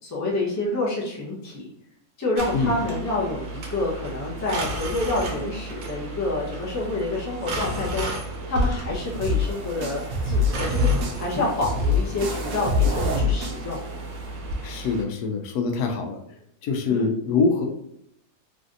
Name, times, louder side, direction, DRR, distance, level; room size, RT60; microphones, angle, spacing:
voice 1, 0.0-1.7 2.2-8.1 8.5-13.8 16.9-17.1, left 2 dB, 20° left, -4 dB, 0.4 m, -28 dB
sound 1, 2.4-15.0, right 2 dB, 65° right, 0.9 m, -33 dB
sound 2, 8.5-14.5, left 3 dB, 90° right, 1.2 m, -25 dB
voice 2, 14.6-16.2 16.6-17.7, left 4 dB, 80° left, 4 dB, 1.1 m, -24 dB
3.2 x 2.5 x 2.6 m, 0.76 s
omnidirectional pair, 1.7 m